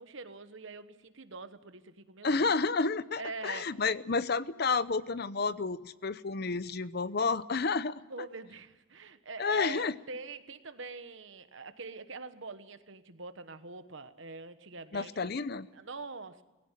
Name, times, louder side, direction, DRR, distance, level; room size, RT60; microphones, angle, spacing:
voice 1, 0.0-2.4 3.2-3.8 8.1-15.3 15.7-16.4, right 3 dB, 65° right, 11 dB, 1.2 m, -44 dB
voice 2, 2.2-8.0 9.4-9.9 14.9-15.7, left 4 dB, 50° left, 16 dB, 0.7 m, -30 dB
19.5 x 16.5 x 9.9 m, 1.2 s
head